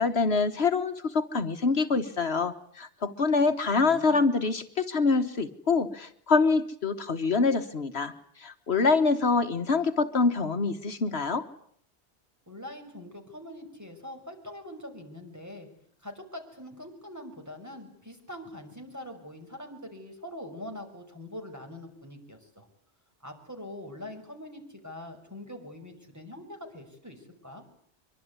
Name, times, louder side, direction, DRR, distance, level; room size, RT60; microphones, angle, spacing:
voice 1, 0.0-8.1 8.4-11.4, left 4 dB, 70° left, 8 dB, 1.6 m, -25 dB
voice 2, 3.8-4.2 12.5-15.7 16.0-22.7 23.2-27.6, left 1 dB, 15° right, 3 dB, 5.8 m, -43 dB
24.5 x 23.5 x 9.6 m, 0.65 s
omnidirectional pair, 1.1 m